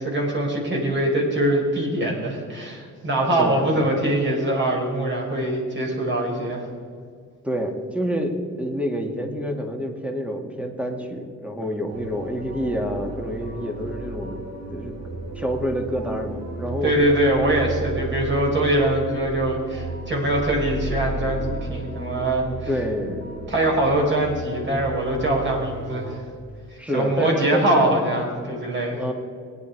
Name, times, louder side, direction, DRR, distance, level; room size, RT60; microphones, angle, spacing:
voice 1, 0.0-6.7 16.8-22.7 23.5-26.2 26.9-29.0, right 1 dB, 40° right, -1 dB, 4.8 m, -23 dB
voice 2, 3.4-3.9 7.4-14.4 14.7-15.0 15.3-17.0 22.7-23.3 26.8-27.9 29.0-29.1, equal, 5° right, 3 dB, 2.1 m, -27 dB
sound 1, 11.9-26.1, right 2 dB, 65° right, 4.9 m, -34 dB
22.0 x 9.6 x 4.7 m, 2.1 s
cardioid pair, 90°, 30 cm